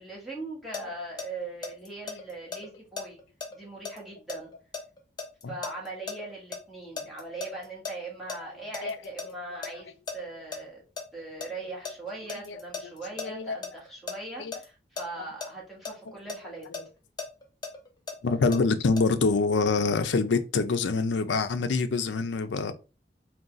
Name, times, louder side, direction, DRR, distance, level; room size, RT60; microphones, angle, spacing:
voice 1, 0.0-3.2 3.5-4.5 5.5-10.8 11.1-16.7, right 2 dB, ahead, 1.5 m, -40 dB
sound 1, 0.7-6.6 7.0-9.3 9.6-9.7 10.1-10.6 11.0-14.2 14.5-14.7 15.0-15.1 15.4-15.5 15.8-18.6 19.0-19.1, left 4 dB, 25° left, 0.6 m, -37 dB
voice 2, 13.2-13.6 14.4-14.5 18.2-22.7, left 4 dB, 80° left, 0.5 m, -25 dB
3.7 x 2.3 x 3.9 m
head